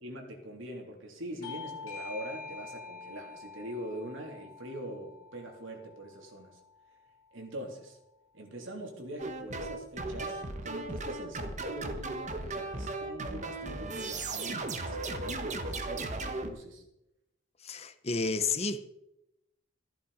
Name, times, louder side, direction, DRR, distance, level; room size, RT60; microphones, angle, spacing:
voice 1, 0.0-6.6 7.3-8.0 8.3-16.8, right 1 dB, 70° right, 3.2 m, -43 dB
Bell / Doorbell, 1.4-6.6, left 4 dB, 85° left, 2.7 m, -46 dB
sound 1, 9.2-16.5, right 2 dB, 35° right, 1.3 m, -36 dB
voice 2, 17.6-18.9, left 4 dB, 30° left, 0.8 m, -31 dB
14.0 x 11.5 x 5.0 m
head